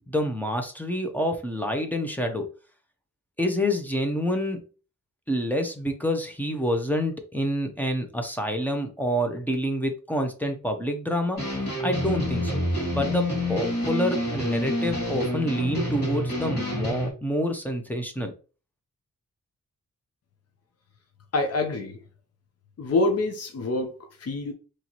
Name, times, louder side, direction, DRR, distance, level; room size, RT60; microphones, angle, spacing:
voice 1, 0.1-2.5 3.4-4.6 5.3-11.4 11.8-12.6 13.0-18.3, equal, 5° left, 0.7 m, -27 dB
sound 1, 11.3-17.1, left 1 dB, 35° left, 2.2 m, -28 dB
voice 2, 21.3-22.0 22.8-24.5, left 2 dB, 50° left, 0.7 m, -26 dB
4.4 x 3.1 x 2.9 m
wide cardioid pair, 165°, 31 cm